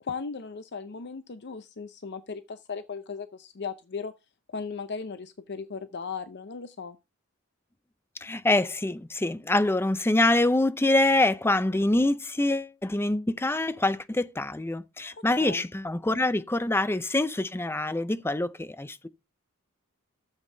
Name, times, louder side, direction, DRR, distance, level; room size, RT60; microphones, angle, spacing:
voice 1, 0.0-4.1 4.5-7.0 15.1-15.7, left 5 dB, 55° left, 0.7 m, -37 dB
voice 2, 8.2-19.1, left 2 dB, 10° left, 0.5 m, -25 dB
11.5 x 7.4 x 3.9 m
head